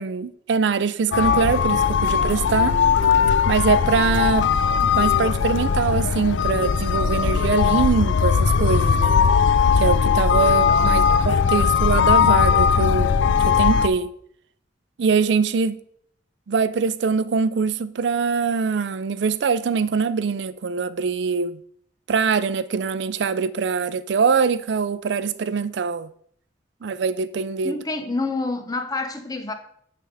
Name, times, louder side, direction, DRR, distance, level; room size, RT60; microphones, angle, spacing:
voice 1, 0.0-2.8 3.5-4.5 4.9-9.2 9.8-13.2 13.4-14.1 15.0-15.8 16.5-21.6 22.1-26.1 26.8-27.7, right 5 dB, 75° right, 0.4 m, -23 dB
sound 1, 1.1-13.9, left 6 dB, 85° left, 0.4 m, -19 dB
voice 2, 10.7-11.1 27.6-29.5, left 3 dB, 20° left, 0.7 m, -28 dB
9.6 x 3.5 x 4.7 m
head